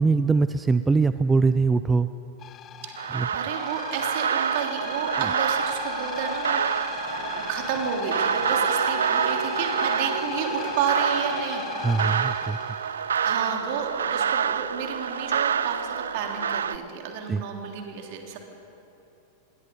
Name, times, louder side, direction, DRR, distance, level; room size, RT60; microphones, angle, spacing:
voice 1, 0.0-2.1 3.1-3.3 5.2-5.3 11.8-12.6 17.3-17.4, right 4 dB, 10° right, 12 dB, 0.5 m, -22 dB
sound 1, 2.4-13.2, left 10 dB, 30° left, 0.8 m, -36 dB
voice 2, 2.8-6.6 7.0-11.6 13.2-18.4, right 7 dB, 50° right, 2 dB, 3.3 m, -31 dB
sound 2, 3.0-16.8, right 7 dB, 65° right, 0.5 m, -27 dB
27.0 x 22.0 x 5.4 m, 2.9 s
figure-of-eight pair, 90°, 0 cm